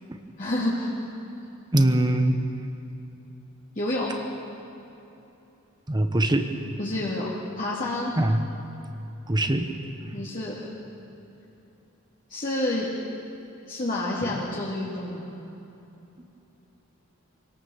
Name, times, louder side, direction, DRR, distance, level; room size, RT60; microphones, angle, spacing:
voice 1, 0.4-0.9 3.8-4.1 6.8-7.3 7.6-8.1 10.1-10.6 12.3-12.9 13.7-15.2, left 1 dB, 40° left, -6 dB, 2.6 m, -28 dB
voice 2, 1.7-2.4 5.9-6.5 8.2-8.4 9.3-9.7, right 1 dB, 20° right, 7 dB, 1.0 m, -22 dB
25.0 x 18.0 x 7.3 m, 2.9 s
head